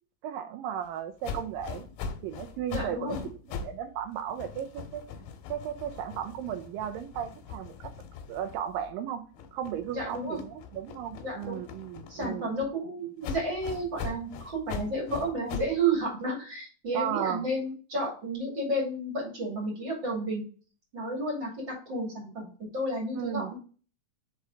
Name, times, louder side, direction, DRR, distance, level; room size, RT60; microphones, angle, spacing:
voice 1, 0.2-1.9 2.2-5.0 5.5-7.9 8.3-9.2 9.5-12.5 16.9-17.5 23.1-23.6, right 10 dB, 80° right, 2.2 m, -35 dB
sound 1, 1.2-3.8 4.1-8.9 9.3-12.7 13.2-15.8, left 5 dB, 80° left, 2.9 m, -41 dB
voice 2, 2.7-3.2 9.9-10.4 11.2-11.6 12.1-20.4 20.9-23.6, right 1 dB, 35° right, 2.7 m, -31 dB
5.5 x 4.7 x 3.8 m
omnidirectional pair, 4.4 m